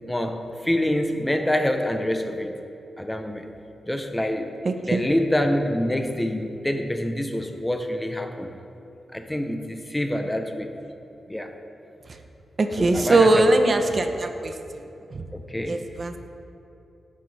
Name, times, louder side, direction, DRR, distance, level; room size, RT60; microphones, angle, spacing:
voice 1, 0.1-2.5 3.0-3.5 3.9-4.5 4.9-8.5 9.1-10.7 11.3-11.5 12.8-13.6 13.9-14.0 15.3-15.8, left 1 dB, 10° left, 5 dB, 0.9 m, -26 dB
voice 2, 4.6-5.0 12.6-14.8 15.1-15.2 15.7-16.2, right 2 dB, 45° right, 6 dB, 0.9 m, -21 dB
17.5 x 10.0 x 3.5 m, 2.7 s
cardioid pair, 85°, 0 cm